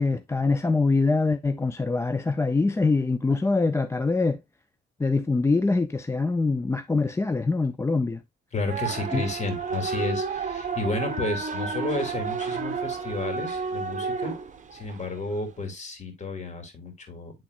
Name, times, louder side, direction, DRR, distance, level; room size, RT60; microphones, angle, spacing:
voice 1, 0.0-4.4 5.0-8.2 9.1-9.2, left 3 dB, 15° left, 0.4 m, -24 dB
voice 2, 8.5-14.3 14.7-17.3, left 2 dB, 35° left, 2.6 m, -32 dB
sound 1, 8.7-15.3, right 5 dB, 40° right, 1.2 m, -31 dB
11.0 x 3.7 x 2.4 m
cardioid pair, 90°, 20 cm